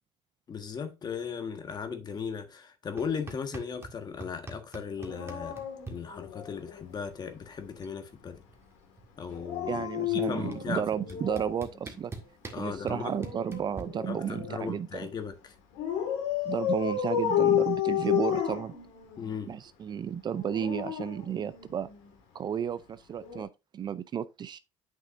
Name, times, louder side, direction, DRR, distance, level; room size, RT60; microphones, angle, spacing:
voice 1, 0.5-8.4 9.2-9.8 10.1-11.2 12.5-13.2 14.1-15.6 19.2-19.5, left 6 dB, 35° left, 1.5 m, -37 dB
sound 1, 3.0-4.0 4.2-6.0 7.2-7.3 7.6-8.0 8.3-9.6 10.5-10.6 11.1-13.8, right 3 dB, 20° right, 1.7 m, -43 dB
Dog, 5.0-6.8 9.3-11.7 13.0-14.6 15.8-19.3 20.3-22.0 23.2-23.4, left 10 dB, 80° left, 1.9 m, -31 dB
voice 2, 9.7-12.1 12.6-15.1 16.5-18.7 19.5-21.9 22.3-24.6, right 8 dB, 40° right, 0.5 m, -33 dB
8.4 x 6.1 x 2.6 m
supercardioid pair, 90°, 12 cm